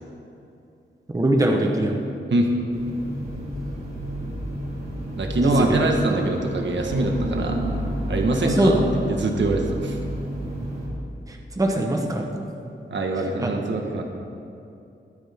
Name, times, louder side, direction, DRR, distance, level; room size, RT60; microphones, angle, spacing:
voice 1, 1.1-2.0 5.4-5.8 8.4-8.9 11.3-12.2 13.4-13.5, right 1 dB, 15° right, 1 dB, 1.1 m, -21 dB
sound 1, 2.7-10.9, equal, 50° right, 3.5 m, -31 dB
voice 2, 5.2-7.6 8.1-8.8 9.1-10.0 12.9-14.0, right 2 dB, 65° right, 2 dB, 1.5 m, -24 dB
21.5 x 10.0 x 3.7 m, 2.7 s
wide cardioid pair, 155°, 20 cm